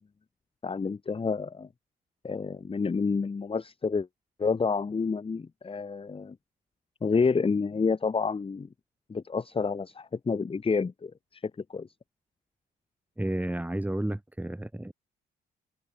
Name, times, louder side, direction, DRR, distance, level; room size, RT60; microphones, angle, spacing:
voice 1, 0.6-1.7 2.2-4.1 4.4-6.3 7.0-8.7 9.1-11.9, left 4 dB, 30° left, 1.5 m, -29 dB
voice 2, 13.2-14.9, right 1 dB, 10° right, 3.5 m, -31 dB
cardioid pair, 90°, 20 cm